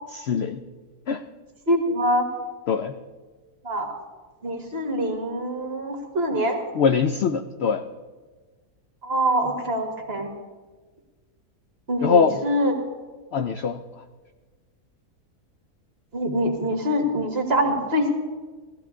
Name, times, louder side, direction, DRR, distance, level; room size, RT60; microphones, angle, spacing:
voice 1, 0.2-0.6 1.1-1.2 2.7-2.9 6.3-6.4 6.8-7.8 12.0-12.4 13.3-13.8, left 6 dB, 75° left, 9 dB, 0.6 m, -22 dB
voice 2, 1.7-2.2 3.6-3.9 4.4-6.6 9.0-10.3 11.9-12.7 16.1-18.2, equal, 40° right, 4 dB, 1.8 m, -24 dB
16.0 x 14.0 x 3.7 m, 1.3 s
omnidirectional pair, 1.7 m